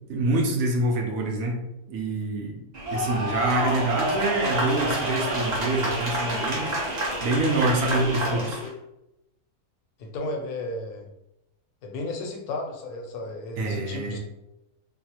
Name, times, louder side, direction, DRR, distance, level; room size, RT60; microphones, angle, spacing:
voice 1, 0.1-1.6 1.9-2.6 2.9-6.7 7.2-8.6 13.6-14.2, right 2 dB, 65° right, 1 dB, 1.1 m, -26 dB
sound 1, 2.7-8.7, equal, 40° right, 0.7 m, -28 dB
voice 2, 8.3-8.7 10.0-11.1 11.8-14.2, left 2 dB, 75° left, 2 dB, 1.1 m, -34 dB
3.9 x 2.0 x 2.9 m, 0.88 s
omnidirectional pair, 1.6 m